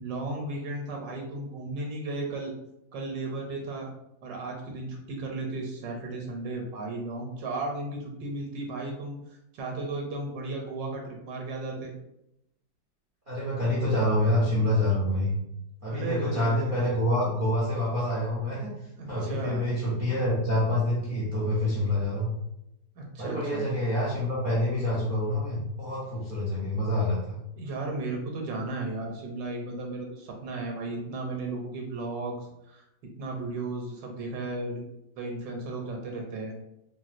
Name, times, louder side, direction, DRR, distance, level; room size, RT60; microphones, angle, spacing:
voice 1, 0.0-2.5 2.9-3.9 4.2-11.9 15.9-16.9 19.0-19.6 23.0-23.6 27.6-32.8 33.2-34.8 35.2-36.5, right 2 dB, 80° right, 1 dB, 1.4 m, -35 dB
voice 2, 13.3-15.3 15.8-18.7 19.1-22.3 23.2-27.4, left 1 dB, 45° right, -8 dB, 0.6 m, -27 dB
4.0 x 2.3 x 2.5 m, 0.84 s
omnidirectional pair, 1.9 m